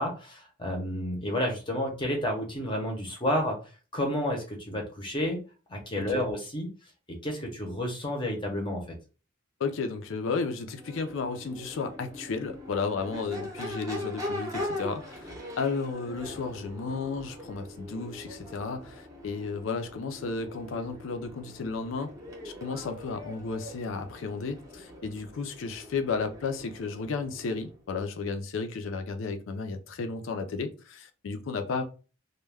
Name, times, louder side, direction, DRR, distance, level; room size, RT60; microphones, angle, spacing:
voice 1, 0.0-3.6 3.9-5.4 5.7-6.7 7.2-8.8, left 1 dB, 25° left, 0.6 m, -30 dB
voice 2, 9.6-22.1 22.4-31.8, left 4 dB, 70° left, 0.4 m, -33 dB
Crowd / Race car auto racing / Accelerating revving vroom, 10.7-27.8, left 1 dB, 15° right, 0.7 m, -41 dB
2.2 x 2.1 x 3.3 m
head